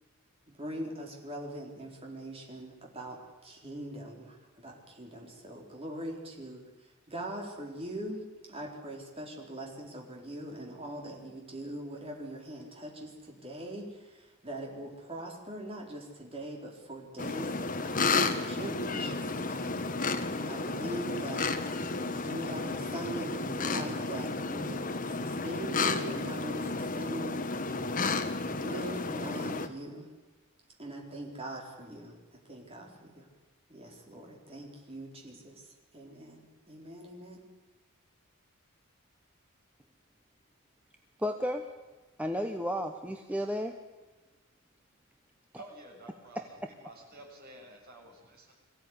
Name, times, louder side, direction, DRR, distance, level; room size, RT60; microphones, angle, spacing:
voice 1, 0.5-21.6 22.2-28.3 28.6-30.1 30.8-33.3 33.7-35.7 35.9-37.4, right 1 dB, 25° right, 0 dB, 4.2 m, -42 dB
sound 1, 17.2-29.7, left 3 dB, 40° left, 1.4 m, -32 dB
voice 2, 41.2-41.7 42.2-43.7 46.3-46.7, equal, 5° right, 5 dB, 1.0 m, -33 dB
voice 3, 45.6-48.6, right 1 dB, 45° right, 0 dB, 6.9 m, -51 dB
22.5 x 16.0 x 9.8 m, 1.3 s
head